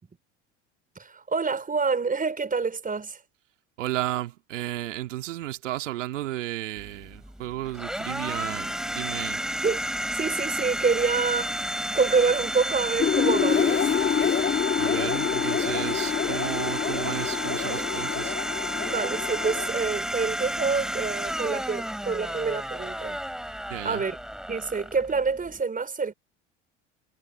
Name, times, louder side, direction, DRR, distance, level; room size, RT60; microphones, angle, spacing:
voice 1, 0.9-3.2 9.6-9.8 10.1-14.1 17.6-17.9 18.9-23.2 23.8-24.2 24.5-26.1, right 4 dB, 20° right, 5.1 m, -27 dB
voice 2, 3.8-9.4 14.8-18.3 23.7-24.0, right 15 dB, 80° right, 2.2 m, -33 dB
Domestic sounds home sounds, 6.8-25.6, equal, ahead, 6.7 m, -32 dB
sound 1, 13.0-19.7, left 8 dB, 30° left, 1.8 m, -27 dB
hypercardioid pair, 75°, 37 cm